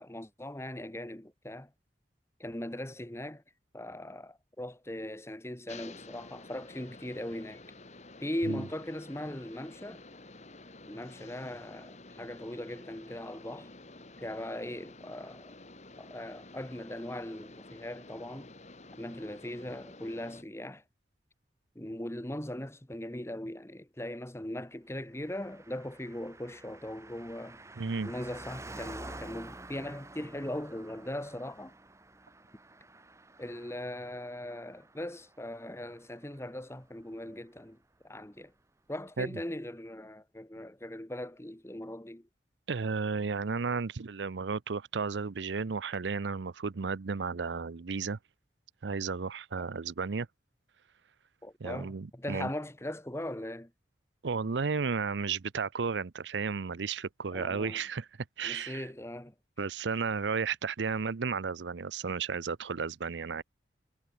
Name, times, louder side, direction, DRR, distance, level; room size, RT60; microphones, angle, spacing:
voice 1, 0.0-1.7 2.4-3.4 3.7-7.6 8.2-10.0 10.9-13.7 14.2-15.6 16.0-18.5 19.0-20.8 21.7-27.6 28.0-31.7 33.4-37.8 38.0-38.5 38.9-42.3 51.4-53.7 57.3-57.8 58.4-59.3, left 1 dB, 15° left, 1.4 m, -39 dB
sound 1, 5.7-20.4, left 2 dB, 40° left, 2.6 m, -51 dB
Car passing by, 25.2-37.0 37.3-37.4, right 2 dB, 15° right, 1.4 m, -49 dB
voice 2, 27.8-28.1 39.2-39.3 42.7-48.2 48.8-50.3 51.6-52.5 54.2-58.1 58.4-58.9 59.6-63.4, right 5 dB, 90° right, 0.6 m, -33 dB
head